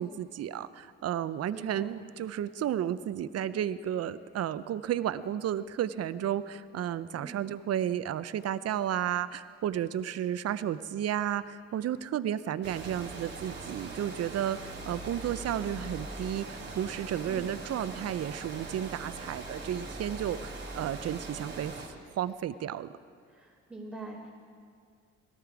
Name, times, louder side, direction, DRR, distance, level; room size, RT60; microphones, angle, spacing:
voice 1, 0.0-21.8 22.2-22.9, right 10 dB, 55° right, 14 dB, 0.6 m, -32 dB
voice 2, 1.5-2.0 7.1-7.3 17.2-17.5 23.3-24.3, right 2 dB, 5° right, -9 dB, 2.8 m, -44 dB
Water, 12.6-21.9, right 3 dB, 35° right, 2.7 m, -41 dB
18.0 x 13.5 x 4.9 m, 2.2 s
cardioid pair, 90°, 30 cm